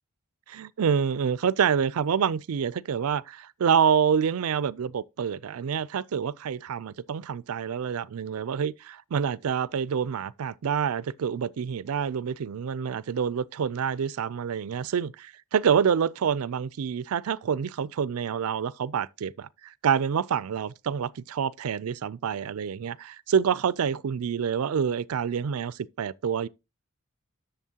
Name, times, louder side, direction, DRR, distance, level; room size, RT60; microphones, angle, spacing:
voice 1, 0.5-26.5, right 7 dB, 80° right, 0.4 m, -27 dB
11.0 x 7.0 x 2.8 m
head